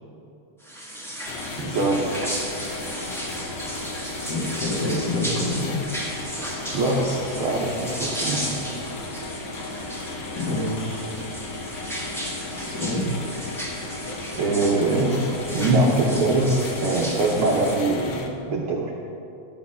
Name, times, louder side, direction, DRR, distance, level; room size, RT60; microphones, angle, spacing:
sound 1, 0.6-17.8, right 1 dB, ahead, 0.8 m, -35 dB
sound 2, 1.3-18.3, left 3 dB, 70° left, 2.1 m, -35 dB
voice 1, 1.6-2.3 6.7-8.6 14.3-18.9, right 2 dB, 65° right, -3 dB, 1.4 m, -23 dB
voice 2, 4.3-5.9 10.3-11.0 12.6-13.2, left 1 dB, 45° left, -4 dB, 1.6 m, -27 dB
12.5 x 8.3 x 5.5 m, 2.9 s
omnidirectional pair, 3.5 m